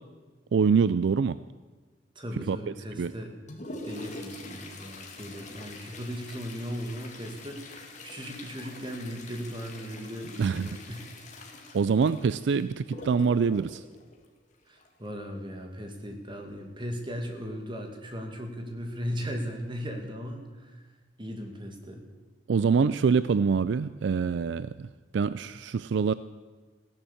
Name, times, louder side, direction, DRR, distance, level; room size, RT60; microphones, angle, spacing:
voice 1, 0.5-1.4 2.5-2.6 3.0-3.1 10.4-10.7 11.7-13.8 22.5-24.9 25.1-26.1, right 5 dB, 70° right, 15 dB, 0.4 m, -25 dB
voice 2, 2.2-3.4 3.8-11.2 14.7-20.8 21.2-22.0, equal, 25° right, 3 dB, 2.1 m, -37 dB
Toilet flush, 3.1-15.1 16.9-17.0 17.4-17.5 18.2-18.3 19.0-19.2 19.7-19.8, left 2 dB, 40° left, 2.2 m, -45 dB
16.0 x 11.0 x 7.2 m, 1.3 s
head